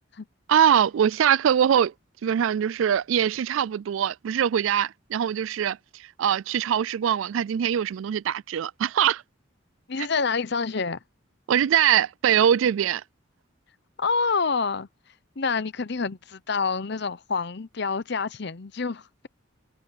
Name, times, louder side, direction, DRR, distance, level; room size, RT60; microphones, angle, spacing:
voice 1, 0.5-1.9 2.2-5.8 6.2-9.2 11.5-13.0, right 9 dB, 75° right, 0.3 m, -22 dB
voice 2, 9.9-11.0 14.0-14.9 15.4-19.3, left 4 dB, 55° left, 0.8 m, -27 dB
head